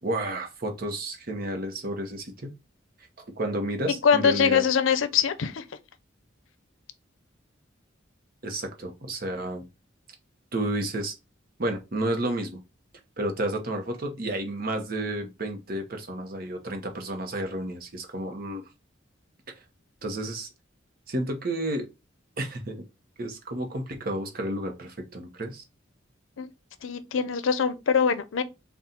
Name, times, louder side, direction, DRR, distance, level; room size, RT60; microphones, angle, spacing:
voice 1, 0.0-2.5 3.2-4.6 8.4-9.6 10.5-11.1 11.6-12.6 13.2-18.6 20.0-20.5 21.1-21.9 22.4-22.8 23.2-25.6, right 1 dB, 50° right, 0.8 m, -31 dB
voice 2, 4.0-5.6 26.4-26.5 26.8-28.4, left 6 dB, 90° left, 0.5 m, -23 dB
4.1 x 2.3 x 3.7 m
head